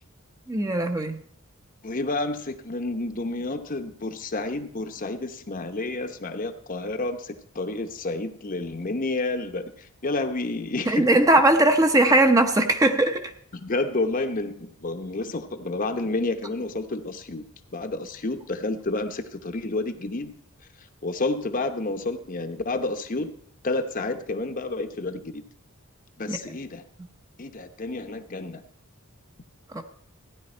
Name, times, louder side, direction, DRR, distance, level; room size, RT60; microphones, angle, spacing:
voice 1, 0.5-1.2 10.9-13.3 26.3-26.6 29.7-29.8, right 1 dB, 15° right, 6 dB, 0.7 m, -20 dB
voice 2, 1.8-11.2 13.5-17.4 17.7-20.3 21.0-23.3 23.6-25.4 26.2-26.8 27.4-28.6, left 2 dB, 40° left, 7 dB, 0.9 m, -30 dB
15.5 x 10.0 x 4.4 m, 0.64 s
head